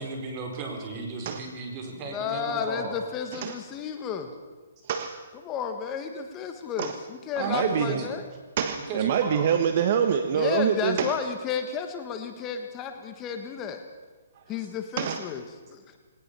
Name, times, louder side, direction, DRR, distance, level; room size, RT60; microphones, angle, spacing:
voice 1, 0.0-3.0 3.4-3.5 7.3-8.1 8.9-9.5, right 3 dB, 25° right, 2 dB, 4.7 m, -35 dB
voice 2, 2.1-4.3 5.4-8.3 10.3-13.8 14.5-15.4 15.7-15.8, left 7 dB, 20° left, 7 dB, 1.4 m, -32 dB
voice 3, 7.4-8.0 8.6-11.1 15.0-15.2, right 8 dB, 45° right, 8 dB, 1.2 m, -25 dB
20.5 x 19.0 x 7.0 m, 1.4 s
hypercardioid pair, 155°, 0 cm